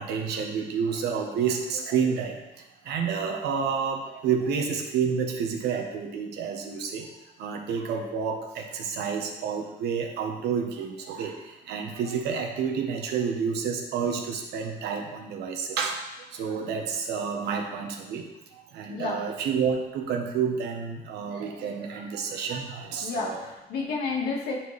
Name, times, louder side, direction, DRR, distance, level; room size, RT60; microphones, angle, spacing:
voice 1, 0.0-2.4 2.8-7.1 7.4-23.5, right 6 dB, 75° right, 3 dB, 1.0 m, -29 dB
voice 2, 23.0-24.6, left 4 dB, 70° left, -2 dB, 1.7 m, -30 dB
9.2 x 4.3 x 3.2 m, 0.96 s
cardioid pair, 110°, 17 cm